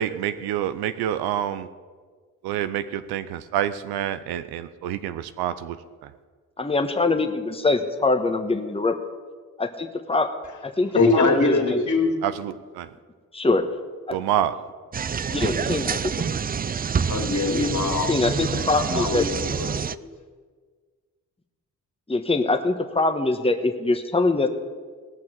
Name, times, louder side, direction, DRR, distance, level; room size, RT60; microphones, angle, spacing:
voice 1, 0.0-1.7 2.4-5.8 12.2-12.9 14.1-14.5, right 10 dB, 85° right, 13 dB, 0.7 m, -27 dB
voice 2, 6.6-8.9 9.6-10.3 10.6-11.6 13.3-13.7 14.1-14.2 15.3-16.1 18.1-19.3 22.1-24.5, left 3 dB, 15° left, 6 dB, 1.3 m, -23 dB
voice 3, 10.9-12.1 17.1-18.3 18.6-20.1, left 3 dB, 50° left, 2 dB, 2.7 m, -23 dB
sound 1, 14.9-20.0, right 6 dB, 25° right, 0.4 m, -27 dB
18.0 x 6.1 x 7.4 m, 1.5 s
supercardioid pair, 45°, 37 cm